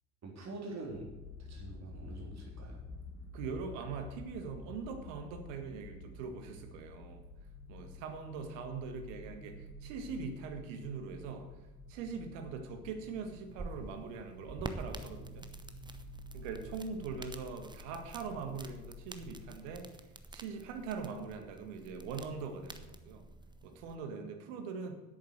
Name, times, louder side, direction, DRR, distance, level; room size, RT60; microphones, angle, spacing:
voice 1, 0.2-1.1 1.4-2.8, right 2 dB, 40° right, -1 dB, 3.8 m, -45 dB
sound 1, 0.9-19.8, left 2 dB, 90° left, 2.7 m, -50 dB
voice 2, 3.3-7.2 7.7-11.5 11.9-15.5 16.3-19.9 20.3-23.2 23.6-24.9, right 5 dB, 65° right, 5 dB, 1.8 m, -42 dB
sound 2, 13.3-24.0, right 2 dB, 10° right, 0.9 m, -49 dB
10.5 x 8.5 x 6.5 m, 1.1 s
figure-of-eight pair, 55°, 41 cm